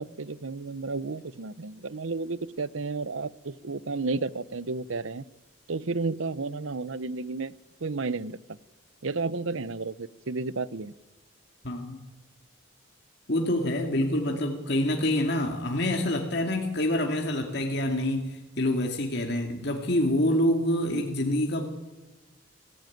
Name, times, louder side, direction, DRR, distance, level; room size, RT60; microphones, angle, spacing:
voice 1, 0.0-5.2 5.7-7.5 7.8-8.4 9.0-10.9 14.3-14.4 20.9-21.0, right 3 dB, 75° right, 18 dB, 0.8 m, -32 dB
voice 2, 11.6-12.0 13.3-21.6, left 1 dB, 50° left, 2 dB, 2.4 m, -26 dB
23.0 x 16.5 x 9.3 m, 1.1 s
head